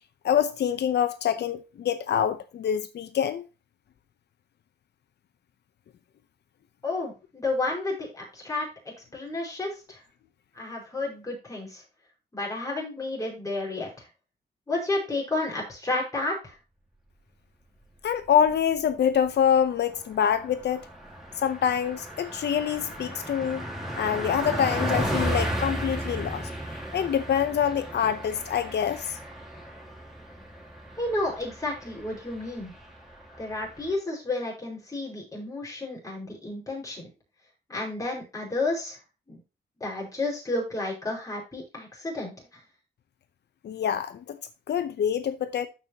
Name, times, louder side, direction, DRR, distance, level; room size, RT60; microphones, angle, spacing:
voice 1, 0.2-3.4 18.0-20.8 21.4-23.6 24.0-26.5 26.9-29.2 43.6-44.4 44.7-45.7, left 8 dB, 85° left, 0.7 m, -25 dB
voice 2, 6.8-8.7 9.1-10.0 10.5-11.8 12.3-13.9 14.7-16.5 31.0-32.7 33.4-37.1 37.7-39.0 39.3-39.4 39.8-42.3, left 2 dB, 20° left, 4.9 m, -31 dB
Car passing by, 18.3-18.9 19.2-19.4 19.7-33.9, right 1 dB, ahead, 2.9 m, -35 dB
13.0 x 5.6 x 2.9 m
wide cardioid pair, 145°, 17 cm